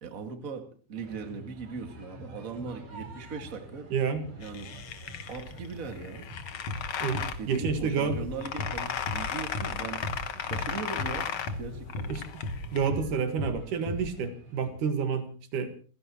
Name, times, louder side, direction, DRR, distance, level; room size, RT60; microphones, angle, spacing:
voice 1, 0.0-3.9 4.4-4.7 5.3-6.3 7.4-10.1 10.4-12.1, right 4 dB, 30° right, 5 dB, 2.0 m, -39 dB
sound 1, 0.9-14.7, right 1 dB, 60° right, 5.6 m, -48 dB
voice 2, 3.9-4.3 7.0-8.2 12.1-12.2 12.7-15.7, right 6 dB, 80° right, 8 dB, 3.2 m, -29 dB
sound 2, 4.4-12.9, left 8 dB, 55° left, 1.6 m, -36 dB
sound 3, 6.7-6.8 7.1-7.3 7.6-7.8 8.1-8.3 8.6-8.7 9.1-9.2 9.5-9.7 10.0-10.2 10.5-10.7 11.0-11.1 11.5-11.6 11.9-12.1 12.4-12.6 12.9-13.1 13.4-13.5 13.9-14.0, left 2 dB, 75° left, 3.7 m, -34 dB
29.0 x 16.0 x 3.0 m, 0.37 s
omnidirectional pair, 3.6 m